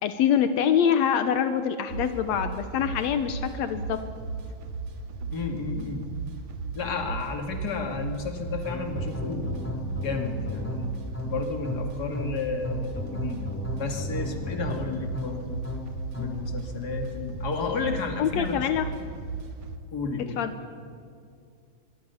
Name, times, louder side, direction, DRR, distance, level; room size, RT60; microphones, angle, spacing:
voice 1, 0.0-4.0 18.2-18.9 20.4-20.5, left 8 dB, 85° left, 9 dB, 1.5 m, -25 dB
sound 1, 1.9-19.8, right 4 dB, 55° right, 2.3 m, -36 dB
voice 2, 5.3-6.0 6.7-10.9 11.2-15.6 16.1-18.6 19.9-20.4, left 4 dB, 30° left, 4 dB, 2.3 m, -32 dB
sound 2, 8.6-16.5, left 1 dB, 5° left, 2.2 m, -35 dB
24.0 x 23.5 x 7.1 m, 2.3 s
omnidirectional pair, 4.3 m